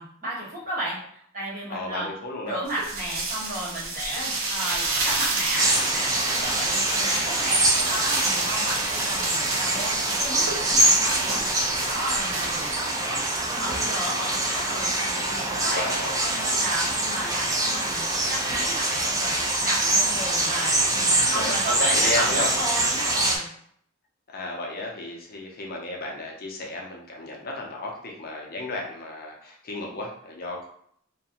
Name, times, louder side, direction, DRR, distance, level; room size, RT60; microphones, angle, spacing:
voice 1, 0.0-2.1 2.5-11.4 11.8-13.2 13.5-15.9 16.2-23.5, right 1 dB, 45° right, -7 dB, 1.2 m, -33 dB
voice 2, 1.7-2.6 15.5-16.2 21.2-22.5 24.3-30.7, left 2 dB, 50° left, -1 dB, 0.5 m, -33 dB
sound 1, 2.7-12.8, right 3 dB, 70° right, 0.6 m, -30 dB
sound 2, 5.6-23.4, right 1 dB, 15° right, 0.4 m, -24 dB
2.4 x 2.1 x 2.8 m, 0.65 s
head